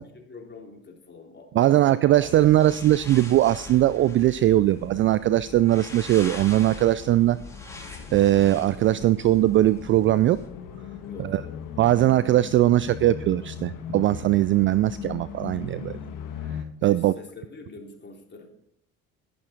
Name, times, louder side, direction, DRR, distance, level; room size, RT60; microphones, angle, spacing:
voice 1, 0.0-2.1 11.1-11.7 16.8-18.5, left 3 dB, 25° left, 0 dB, 3.6 m, -45 dB
voice 2, 1.5-7.4 8.1-10.4 11.2-11.4 11.8-16.0 16.8-17.1, right 14 dB, 30° right, 16 dB, 0.4 m, -20 dB
sound 1, 2.1-16.6, left 7 dB, 50° left, 1.7 m, -40 dB
sound 2, 2.3-10.5, left 2 dB, 5° left, 3.0 m, -43 dB
11.0 x 11.0 x 4.4 m, 0.71 s
figure-of-eight pair, 60°, 41 cm